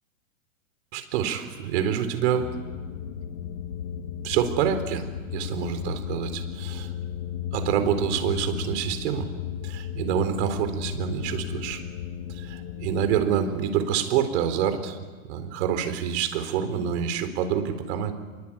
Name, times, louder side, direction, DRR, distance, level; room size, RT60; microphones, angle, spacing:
voice 1, 0.9-2.5 4.2-5.0 5.3-6.8 7.5-9.3 9.6-11.8 12.3-15.0 15.2-18.1, right 8 dB, 55° right, 8 dB, 4.2 m, -26 dB
sound 1, 2.4-13.4, left 9 dB, 65° left, 2.7 m, -35 dB
27.0 x 23.0 x 8.9 m, 1.4 s
hypercardioid pair, 140°, 40 cm